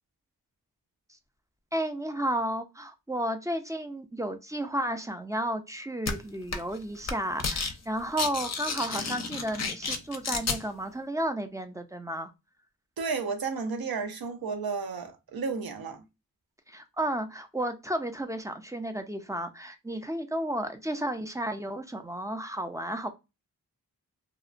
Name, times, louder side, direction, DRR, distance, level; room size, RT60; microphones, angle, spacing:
voice 1, 1.7-12.3 16.7-23.1, right 1 dB, 10° right, 0.4 m, -32 dB
sound 1, 6.1-6.2 6.5-6.8 7.0-7.7 8.0-10.6, left 4 dB, 50° left, 0.5 m, -31 dB
voice 2, 13.0-16.0, right 5 dB, 85° right, 0.6 m, -32 dB
2.8 x 2.0 x 2.5 m
wide cardioid pair, 80°, 36 cm